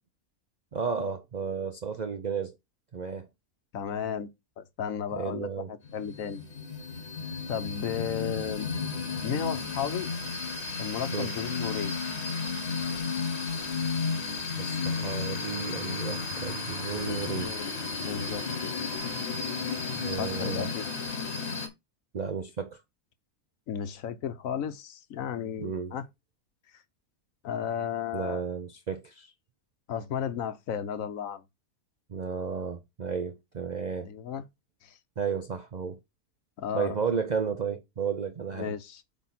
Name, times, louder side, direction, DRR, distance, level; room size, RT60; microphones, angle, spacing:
voice 1, 0.7-2.6 2.9-3.3 5.1-5.7 11.1-11.3 14.6-17.6 19.9-20.7 22.1-22.8 25.6-26.0 28.1-29.3 32.1-34.1 35.2-36.0 36.7-38.7, right 6 dB, 55° right, 0.4 m, -33 dB
voice 2, 3.7-4.3 4.6-6.4 7.5-8.7 9.2-10.1 10.8-12.0 15.0-15.2 17.0-17.8 18.0-18.7 20.2-20.9 23.7-26.0 27.4-28.4 29.9-31.4 34.0-34.4 34.8-35.0 36.6-36.9 38.6-39.0, left 8 dB, 65° left, 1.1 m, -34 dB
sound 1, 5.8-21.7, left 4 dB, 50° left, 1.4 m, -33 dB
8.3 x 3.5 x 4.1 m
omnidirectional pair, 1.6 m